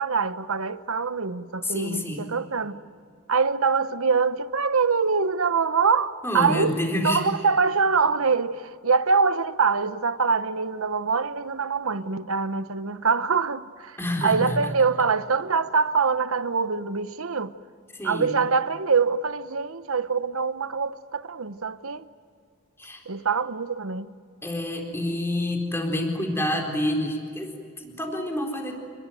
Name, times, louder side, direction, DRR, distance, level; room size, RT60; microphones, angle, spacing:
voice 1, 0.0-2.8 3.3-6.8 7.0-17.5 18.0-22.1 23.1-24.1, right 5 dB, 70° right, 1.0 m, -24 dB
voice 2, 1.6-2.3 6.2-7.2 14.0-14.6 17.9-18.3 22.8-23.0 24.4-28.7, left 1 dB, 10° left, 4.1 m, -28 dB
28.5 x 21.0 x 9.2 m
head